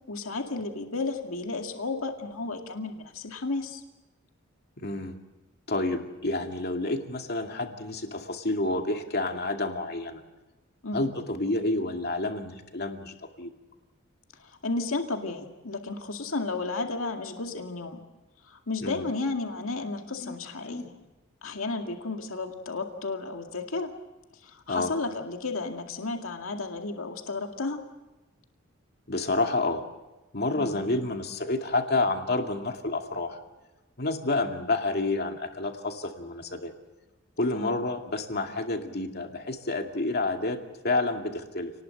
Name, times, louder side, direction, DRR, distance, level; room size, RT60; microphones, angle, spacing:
voice 1, 0.1-3.8 10.8-11.0 14.4-18.0 18.5-20.9 21.4-23.9 24.4-27.8 30.6-30.8 37.5-37.8, left 3 dB, 80° left, 3 dB, 2.2 m, -33 dB
voice 2, 4.8-5.2 5.7-10.2 10.9-13.5 18.8-19.1 20.2-20.4 20.6-20.9 24.7-24.9 29.1-29.8 30.3-33.4 34.0-36.7 37.4-40.6 40.8-41.7, left 2 dB, 50° left, 4 dB, 2.3 m, -29 dB
28.5 x 19.5 x 7.9 m, 1.1 s
head